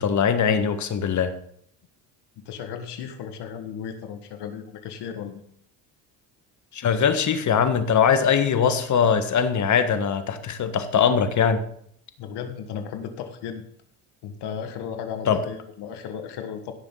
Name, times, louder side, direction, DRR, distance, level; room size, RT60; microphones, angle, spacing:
voice 1, 0.0-1.3 6.7-11.6 15.3-15.4, left 7 dB, 45° left, 9 dB, 1.6 m, -21 dB
voice 2, 2.4-5.4 12.2-13.6 14.2-16.7, left 7 dB, 70° left, 6 dB, 1.7 m, -35 dB
16.5 x 7.0 x 3.9 m, 0.66 s
supercardioid pair, 95°, 42 cm